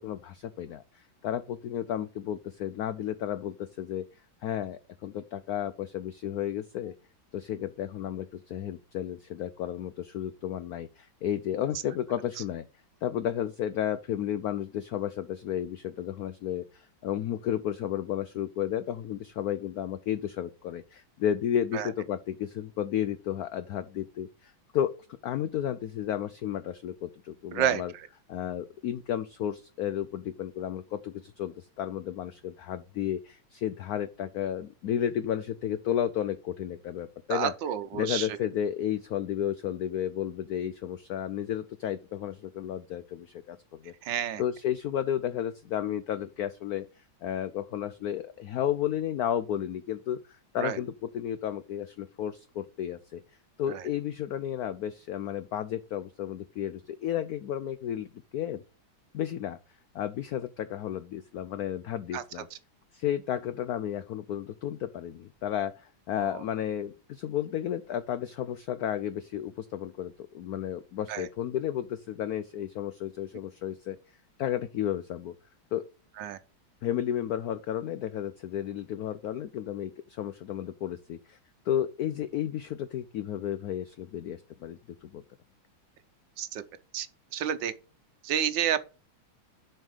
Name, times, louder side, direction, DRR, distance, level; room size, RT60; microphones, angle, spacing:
voice 1, 0.0-4.0 4.4-6.9 7.3-12.7 13.0-24.9 25.2-27.9 28.3-37.5 37.9-46.9 47.2-53.2 53.6-58.6 59.1-59.6 59.9-62.5 62.9-74.0 74.4-75.3 75.7-75.8 76.8-81.4 81.7-85.2, left 10 dB, 80° left, 0.8 m, -33 dB
voice 2, 37.3-38.3 44.0-44.4 50.6-50.8 53.7-53.8 62.1-62.2 66.2-66.4 71.1-71.3 76.2-76.4 86.4-86.6 86.9-87.1 87.3-87.7 88.2-88.9, right 9 dB, 70° right, 1.4 m, -29 dB
7.3 x 5.3 x 4.9 m
omnidirectional pair, 2.2 m